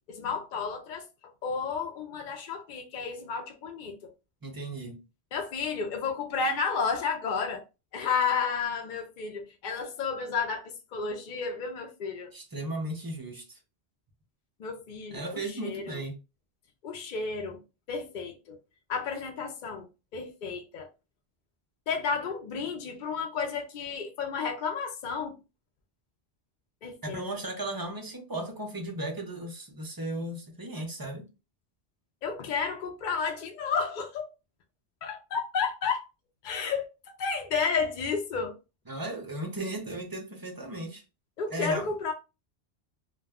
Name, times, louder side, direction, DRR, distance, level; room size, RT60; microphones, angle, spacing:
voice 1, 0.1-1.1 1.4-3.9 5.3-7.6 7.9-12.3 14.6-16.0 16.8-17.6 17.9-18.6 18.9-19.9 20.1-20.9 21.9-25.4 26.8-27.2 32.2-34.3 35.0-36.1 36.4-36.9 37.2-38.6 41.4-42.1, left 5 dB, 60° left, 0.6 m, -32 dB
voice 2, 4.4-5.0 12.3-13.6 15.1-16.2 27.0-31.3 38.9-41.0 41.5-41.9, right 1 dB, 25° right, 0.5 m, -36 dB
2.3 x 2.1 x 3.4 m
omnidirectional pair, 1.1 m